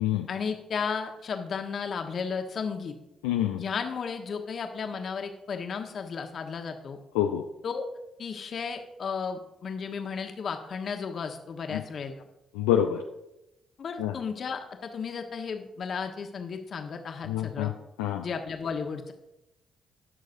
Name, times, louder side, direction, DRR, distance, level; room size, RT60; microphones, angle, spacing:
voice 1, 0.3-2.9 3.6-7.0 7.6-7.8 8.2-12.1 13.8-17.7 18.2-19.1, left 5 dB, 50° left, 4 dB, 1.3 m, -34 dB
voice 2, 3.2-3.6 7.1-7.4 11.7-11.8 12.6-13.0 14.0-14.1 17.3-17.7 18.0-18.2, left 11 dB, 80° left, 3 dB, 0.5 m, -26 dB
18.0 x 6.4 x 2.7 m, 0.91 s
hypercardioid pair, 45°, 0 cm